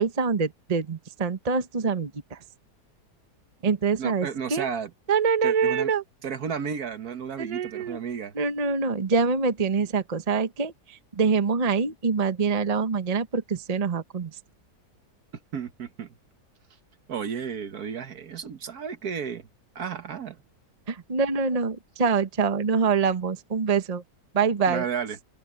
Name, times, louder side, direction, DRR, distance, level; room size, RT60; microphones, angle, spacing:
voice 1, 0.0-2.4 3.6-4.7 5.1-6.0 7.4-8.0 8.3-14.4 20.9-24.0 24.3-24.8, right 5 dB, 25° right, 1.0 m, -25 dB
voice 2, 4.0-4.9 5.4-5.9 6.2-8.3 15.5-16.2 17.1-19.5 19.8-20.4 24.7-25.2, right 7 dB, 65° right, 1.7 m, -33 dB
open air
omnidirectional pair, 1.8 m